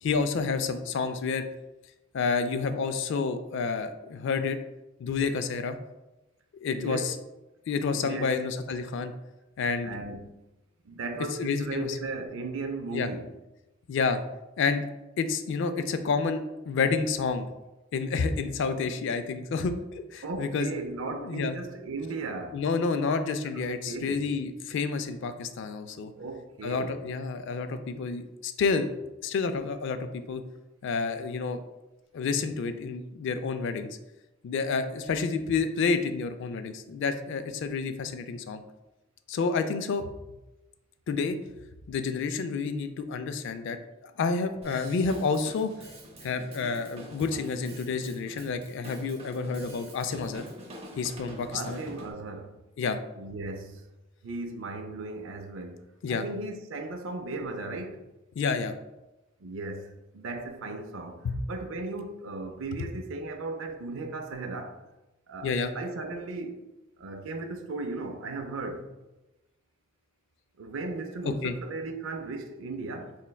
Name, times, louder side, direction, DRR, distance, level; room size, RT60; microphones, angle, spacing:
voice 1, 0.0-1.4 2.1-4.6 5.0-5.8 6.6-7.1 7.7-9.1 9.6-10.0 11.4-12.0 12.9-13.1 13.9-14.2 14.6-14.9 15.2-17.5 17.9-20.7 21.1-21.5 22.5-26.1 26.6-28.9 29.2-30.4 30.8-31.6 32.1-34.0 34.4-38.6 39.3-40.1 41.1-41.4 41.9-45.7 46.2-50.5 51.0-51.8 52.8-53.0 56.0-56.3 58.4-58.7 61.2-61.4 65.4-65.7 71.2-71.6, left 4 dB, 65° left, 0.3 m, -29 dB
voice 2, 6.7-7.1 7.9-8.3 9.8-10.4 10.8-13.3 20.2-22.6 23.5-24.3 26.2-27.0 51.5-52.6 53.2-53.9 54.2-58.1 59.4-64.8 65.3-66.7 67.0-68.9 70.6-73.2, right 3 dB, 75° right, 0.5 m, -36 dB
Drum kit / Drum, 44.6-52.1, equal, 30° right, 0.6 m, -46 dB
4.3 x 3.2 x 2.2 m
head